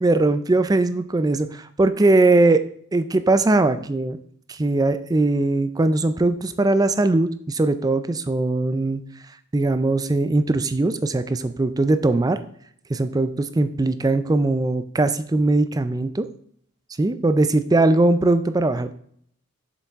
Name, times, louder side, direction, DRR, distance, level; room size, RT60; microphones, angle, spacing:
voice 1, 0.0-2.6 2.9-4.2 4.5-9.0 9.5-12.4 12.9-16.3 17.0-18.9, right 2 dB, 15° right, 12 dB, 0.3 m, -20 dB
7.0 x 6.9 x 3.5 m, 0.65 s
head